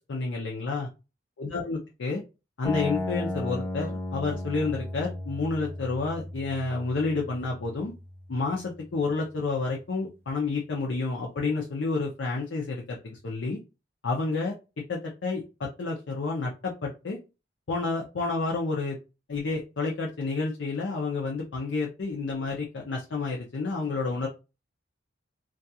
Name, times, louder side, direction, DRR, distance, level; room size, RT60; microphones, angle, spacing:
voice 1, 0.1-0.9 1.4-2.2 2.6-7.9 8.3-13.6 14.0-14.5 14.9-17.2 17.7-19.0 19.3-24.3, left 3 dB, 80° left, -1 dB, 0.6 m, -30 dB
sound 1, 2.6-8.7, left 1 dB, 10° left, 0.4 m, -35 dB
2.4 x 2.3 x 2.7 m, 0.29 s
head